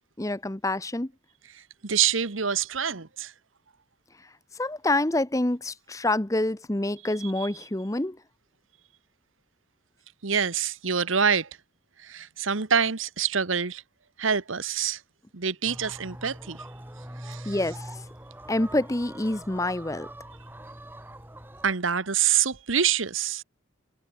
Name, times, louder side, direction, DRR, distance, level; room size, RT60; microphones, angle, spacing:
voice 1, 0.2-1.1 4.6-8.2 17.4-17.9 18.5-20.1, left 1 dB, 15° left, 0.8 m, -27 dB
voice 2, 1.8-3.3 7.2-7.5 10.2-11.5 12.0-13.8 14.2-15.0 15.3-16.6 17.2-17.6 21.6-23.4, right 7 dB, 85° right, 1.4 m, -26 dB
sound 1, 15.6-21.7, right 1 dB, 10° right, 3.7 m, -43 dB
head